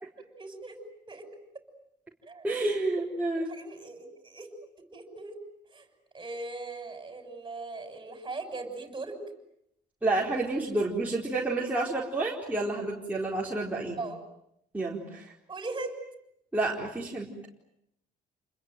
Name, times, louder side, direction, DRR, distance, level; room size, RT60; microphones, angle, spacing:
voice 1, 0.2-0.8 1.1-1.3 2.2-2.5 3.3-4.5 4.8-5.4 5.7-5.9 6.1-9.2 14.0-14.2 15.5-16.0, right 3 dB, 25° right, 7 dB, 6.7 m, -39 dB
voice 2, 2.4-3.5 10.0-14.0 14.7-15.3 16.5-17.3, right 2 dB, 10° right, -4 dB, 4.4 m, -29 dB
29.5 x 21.5 x 9.3 m, 0.78 s
cardioid pair, 110°, 17 cm